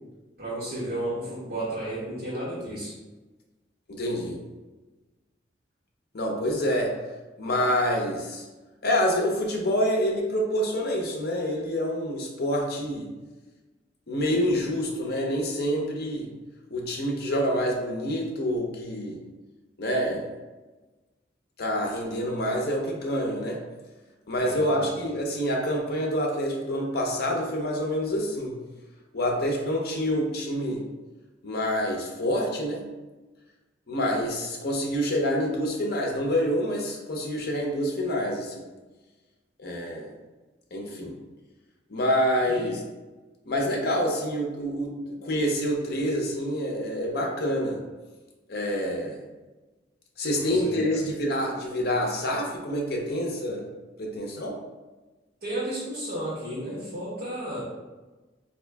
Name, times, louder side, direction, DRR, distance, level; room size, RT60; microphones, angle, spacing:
voice 1, 0.4-2.9 24.4-24.9 42.5-42.7 50.3-51.0 55.4-57.6, right 1 dB, 55° right, -11 dB, 1.2 m, -33 dB
voice 2, 3.9-4.4 6.1-6.9 7.4-8.4 8.8-13.1 14.1-16.3 16.7-19.2 19.8-20.2 21.6-23.6 24.3-28.6 29.1-30.8 31.4-32.8 33.9-38.6 39.6-40.1 40.7-41.1 41.9-42.8 43.5-47.8 48.5-49.2 50.2-53.7 54.0-54.6, equal, 60° left, 0 dB, 0.7 m, -27 dB
3.6 x 2.7 x 3.3 m, 1.2 s
head